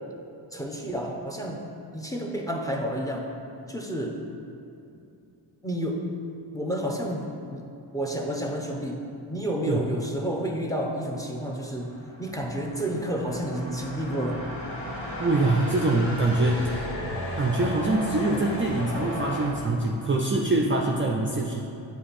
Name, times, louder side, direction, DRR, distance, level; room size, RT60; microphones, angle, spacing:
voice 1, 0.5-1.6 1.9-3.3 3.7-4.1 5.6-6.0 6.5-7.6 7.9-9.0 9.3-11.9 12.2-14.4, equal, 5° left, 0 dB, 0.8 m, -30 dB
sound 1, 11.5-19.5, equal, 80° left, 1.4 m, -35 dB
voice 2, 15.2-16.6 17.4-21.7, right 2 dB, 25° right, 0 dB, 0.5 m, -24 dB
7.6 x 3.5 x 4.2 m, 2.7 s
cardioid pair, 55°, 49 cm